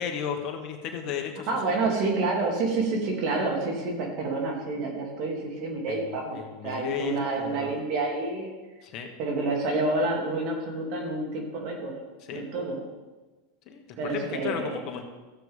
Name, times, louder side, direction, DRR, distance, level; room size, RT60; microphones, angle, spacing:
voice 1, 0.0-1.9 5.9-6.0 6.3-7.7 8.8-9.1 12.3-12.5 13.7-15.0, left 8 dB, 50° left, 4 dB, 1.5 m, -34 dB
voice 2, 1.5-8.5 9.2-11.9 12.3-12.8 14.0-14.8, right 3 dB, 55° right, 1 dB, 2.9 m, -28 dB
14.5 x 7.9 x 3.7 m, 1.2 s
hypercardioid pair, 105°, 0 cm